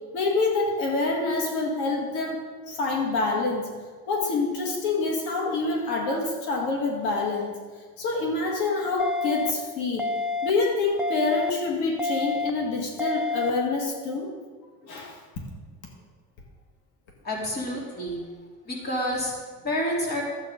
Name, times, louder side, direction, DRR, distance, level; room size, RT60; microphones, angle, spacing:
voice 1, 0.1-2.4 2.7-3.7 4.1-7.5 8.0-10.1 10.4-14.3 14.8-15.2, left 3 dB, 80° left, 0 dB, 2.2 m, -26 dB
sound 1, 9.0-9.5 10.0-10.5 11.0-11.5 12.0-12.5 13.0-13.5, left 3 dB, 5° right, 0.4 m, -28 dB
voice 2, 17.2-18.2 18.7-19.3 19.6-20.2, equal, 35° left, -3 dB, 3.2 m, -28 dB
12.5 x 8.4 x 5.3 m, 1.5 s
cardioid pair, 155°, 30 cm